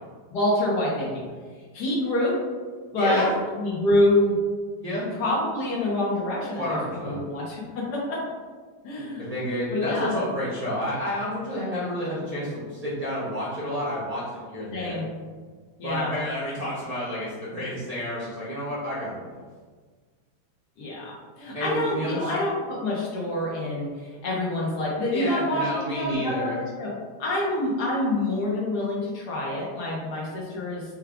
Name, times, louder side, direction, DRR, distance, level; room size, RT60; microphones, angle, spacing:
voice 1, 0.3-1.2 1.7-2.4 2.9-3.2 3.6-4.4 4.9-8.2 8.8-9.3 9.7-10.1 14.7-15.0 15.8-16.1 20.8-26.9 27.2-30.8, left 1 dB, 60° left, -4 dB, 1.3 m, -26 dB
voice 2, 3.0-3.3 4.8-5.1 6.6-7.2 9.2-15.0 15.8-19.4 21.5-22.3 25.1-26.6, equal, 60° right, -8 dB, 0.4 m, -30 dB
4.6 x 2.3 x 3.5 m, 1.5 s
omnidirectional pair, 2.2 m